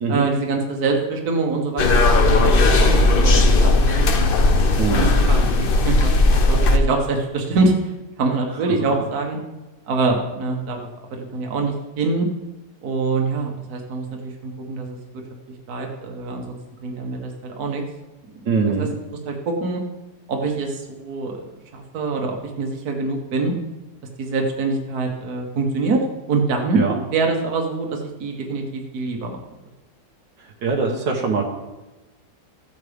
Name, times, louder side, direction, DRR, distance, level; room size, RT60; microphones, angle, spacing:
voice 1, 0.1-5.5 5.8-6.1 6.5-7.7 8.2-9.4 9.9-10.8 11.1-12.3 12.8-15.0 15.7-16.6 16.8-17.8 18.8-18.9 19.3-19.8 20.3-21.4 21.7-23.5 24.2-26.0 26.3-26.8 27.1-29.4, right 3 dB, 60° right, 2 dB, 1.8 m, -24 dB
sound 1, 1.8-6.8, left 2 dB, 55° left, 0.6 m, -16 dB
voice 2, 4.8-5.2 8.7-8.8 18.5-18.9 26.7-27.0 30.6-31.4, right 4 dB, 75° right, 1 dB, 1.9 m, -22 dB
15.0 x 8.6 x 3.5 m, 1.1 s
omnidirectional pair, 1.9 m